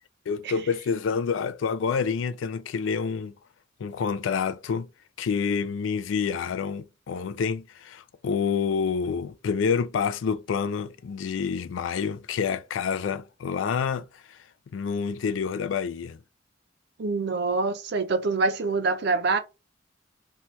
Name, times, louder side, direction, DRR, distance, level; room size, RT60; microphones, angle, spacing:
voice 1, 0.3-3.3 3.8-4.9 5.2-14.4 14.7-16.2, left 6 dB, 80° left, 0.4 m, -28 dB
voice 2, 17.0-19.4, right 3 dB, 60° right, 0.5 m, -25 dB
2.7 x 2.2 x 3.1 m
head